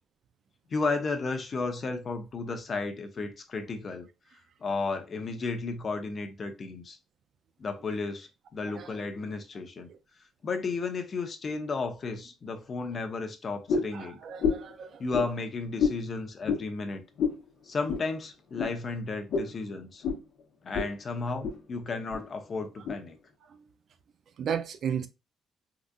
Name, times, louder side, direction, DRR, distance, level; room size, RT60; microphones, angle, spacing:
voice 1, 0.7-4.1 4.6-7.0 7.6-9.9 10.4-14.2 15.0-17.0 17.7-20.0 20.6-23.2, left 3 dB, 45° left, 0.6 m, -33 dB
sound 1, 13.7-14.0 14.4-14.7 15.1-15.3 15.8-16.0 16.4-16.6 17.2-17.4 17.9-18.1 18.6-18.7 19.3-19.5 20.0-20.2 20.7-20.9 21.2-21.6 22.1-22.2 22.8-23.0, left 5 dB, 75° left, 0.8 m, -28 dB
voice 2, 13.9-15.0 24.4-25.1, right 8 dB, 65° right, 0.4 m, -34 dB
3.8 x 2.5 x 2.2 m
cardioid pair, 90°, 0 cm